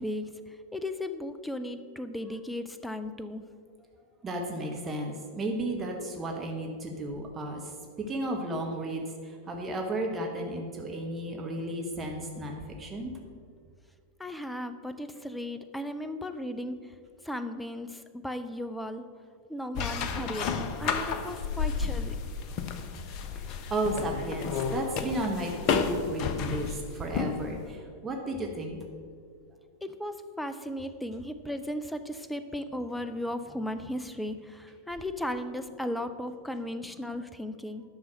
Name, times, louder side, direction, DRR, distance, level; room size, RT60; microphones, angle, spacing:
voice 1, 0.0-3.4 14.2-16.9 17.2-19.0 19.5-22.2 29.8-37.8, left 1 dB, 5° left, 9 dB, 0.6 m, -36 dB
voice 2, 4.2-7.7 8.0-13.1 23.3-23.4 23.7-28.8, right 1 dB, 20° right, 1 dB, 1.2 m, -33 dB
sound 1, 19.8-27.5, left 6 dB, 40° left, 0.7 m, -31 dB
10.5 x 6.2 x 6.3 m, 2.1 s
figure-of-eight pair, 90°, 0 cm